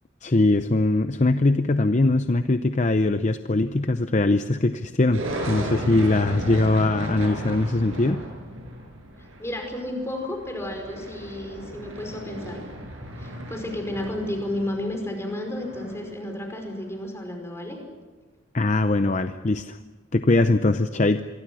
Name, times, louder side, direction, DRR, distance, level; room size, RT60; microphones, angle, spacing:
voice 1, 0.2-5.2 5.5-8.2 18.5-19.8 20.1-21.2, left 2 dB, 35° left, 9 dB, 0.7 m, -21 dB
sound 1, 5.1-16.3, right 1 dB, 85° right, 7.7 m, -35 dB
voice 2, 9.2-12.6 13.2-17.8, left 1 dB, 15° left, 3 dB, 5.1 m, -32 dB
27.0 x 23.0 x 6.3 m, 1.3 s
head